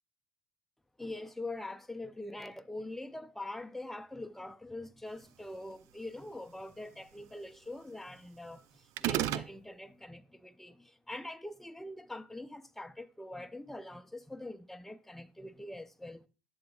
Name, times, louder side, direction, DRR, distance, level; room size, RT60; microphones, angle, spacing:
voice 1, 1.0-16.2, left 2 dB, 5° left, 0.5 m, -44 dB
sound 1, 9.0-9.5, right 13 dB, 65° right, 0.4 m, -30 dB
11.5 x 7.9 x 2.3 m
supercardioid pair, 95°, 6 cm